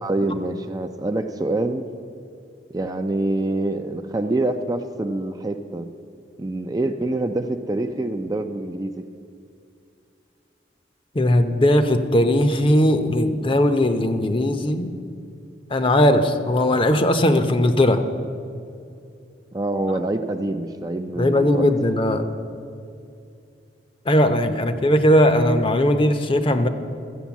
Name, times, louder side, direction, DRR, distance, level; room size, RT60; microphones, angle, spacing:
voice 1, 0.0-1.9 2.7-5.9 6.4-9.0 19.5-21.7, right 2 dB, 20° right, 6 dB, 0.4 m, -25 dB
voice 2, 11.1-14.9 15.7-18.0 21.2-22.2 24.1-26.7, left 1 dB, 30° left, 8 dB, 0.7 m, -18 dB
13.0 x 8.2 x 7.1 m, 2.5 s
head